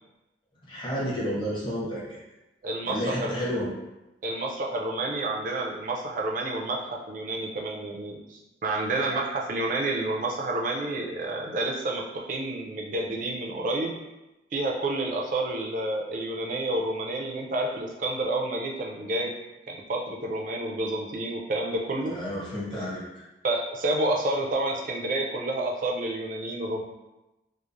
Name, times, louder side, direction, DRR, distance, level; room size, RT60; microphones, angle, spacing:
voice 1, 0.7-2.0 2.8-3.7 22.0-23.0, equal, 30° left, -7 dB, 0.8 m, -30 dB
voice 2, 2.6-3.3 4.2-6.8 7.1-13.9 14.5-19.3 19.7-22.2 23.4-26.8, right 2 dB, 50° right, 0 dB, 0.4 m, -29 dB
2.9 x 2.0 x 2.4 m, 0.99 s
head